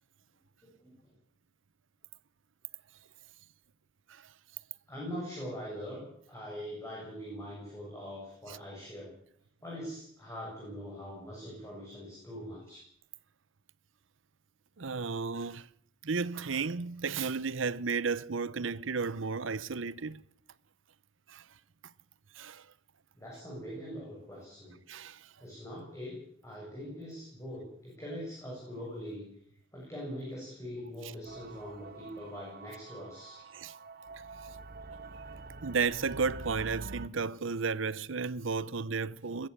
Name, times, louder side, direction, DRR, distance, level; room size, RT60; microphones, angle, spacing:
voice 1, 0.6-1.1 4.9-9.1 9.6-12.8 23.2-24.8 25.4-29.3 29.7-33.4, equal, 15° left, 8.0 m, -42 dB
voice 2, 14.8-15.7 16.0-20.2 21.3-21.4 22.3-22.7 24.9-25.3 33.5-33.7 35.6-39.5, right 5 dB, 85° right, 0.8 m, -33 dB
sound 1, 31.3-37.1, right 3 dB, 50° right, 0.9 m, -46 dB
21.5 x 15.0 x 8.6 m
head